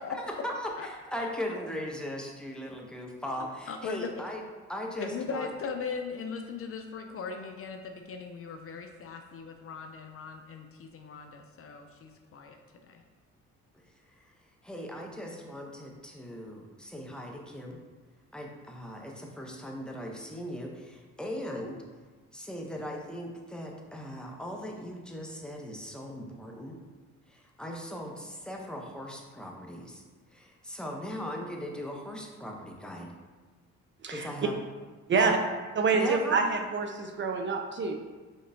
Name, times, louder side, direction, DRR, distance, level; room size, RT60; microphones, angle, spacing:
voice 1, 0.2-4.4 4.7-5.5 14.2-14.3 14.6-17.8 18.3-21.8 22.3-26.8 27.3-30.0 30.3-33.1 34.1-34.6 35.1-35.4 35.9-36.4, left 1 dB, 5° left, 0 dB, 0.7 m, -38 dB
voice 2, 3.4-4.2 5.0-13.0, left 5 dB, 50° left, 5 dB, 0.5 m, -39 dB
voice 3, 35.8-37.9, right 4 dB, 40° right, 4 dB, 0.4 m, -27 dB
5.2 x 3.8 x 2.7 m, 1.3 s
cardioid pair, 90°, 30 cm